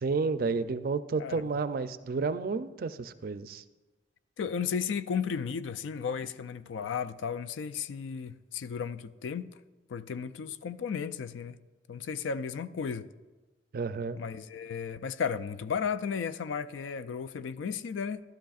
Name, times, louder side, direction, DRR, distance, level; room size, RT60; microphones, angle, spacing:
voice 1, 0.0-3.6 13.7-14.2, right 4 dB, 50° right, 0.4 m, -31 dB
voice 2, 4.4-9.5 9.9-11.6 11.9-13.1 14.2-18.2, left 6 dB, 85° left, 0.4 m, -34 dB
13.0 x 12.0 x 2.4 m
head